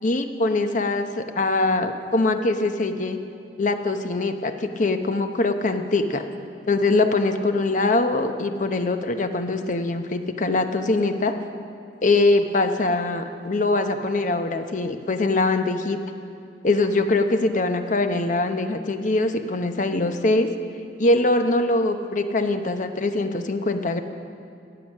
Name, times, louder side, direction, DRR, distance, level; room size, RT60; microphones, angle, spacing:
voice 1, 0.0-3.2 3.6-6.3 6.7-11.3 12.0-16.0 16.6-20.5 21.0-24.0, left 2 dB, 45° left, 8 dB, 0.8 m, -22 dB
16.0 x 8.8 x 6.5 m, 2.5 s
head